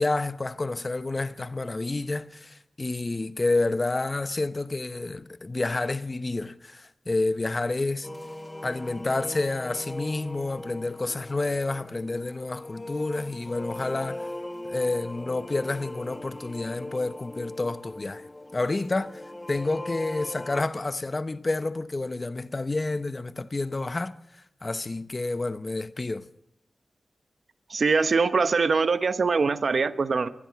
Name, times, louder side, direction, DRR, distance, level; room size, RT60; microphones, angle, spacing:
voice 1, 0.0-8.1 8.6-14.3 14.7-18.3 18.5-26.3, left 2 dB, 40° left, 0.9 m, -29 dB
sound 1, 8.0-20.7, left 1 dB, 20° left, 1.3 m, -39 dB
voice 2, 27.7-30.3, right 4 dB, 70° right, 1.0 m, -23 dB
27.0 x 20.5 x 4.7 m
cardioid pair, 65°, 0 cm